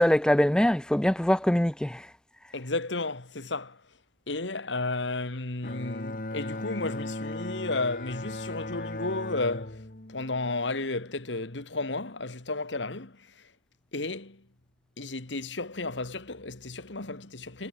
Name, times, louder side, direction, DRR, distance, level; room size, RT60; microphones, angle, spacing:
voice 1, 0.0-2.1, left 1 dB, 5° left, 0.4 m, -23 dB
voice 2, 2.5-3.8 4.3-13.5 13.9-14.5 15.0-17.7, left 2 dB, 75° left, 2.2 m, -33 dB
Bowed string instrument, 5.6-11.1, left 2 dB, 50° left, 1.9 m, -37 dB
head